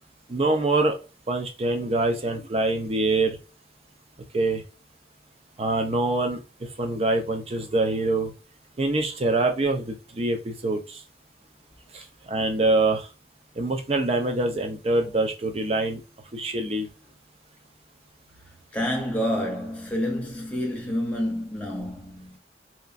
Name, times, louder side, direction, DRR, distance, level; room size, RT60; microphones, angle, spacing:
voice 1, 0.3-1.0 1.3-3.4 4.3-4.6 5.6-6.4 6.8-8.3 8.8-11.0 11.9-12.0 12.3-13.1 13.6-16.0 16.3-16.9, right 2 dB, 35° right, 0.5 m, -24 dB
voice 2, 18.7-22.4, equal, 10° left, 0.7 m, -28 dB
2.9 x 2.3 x 2.5 m
head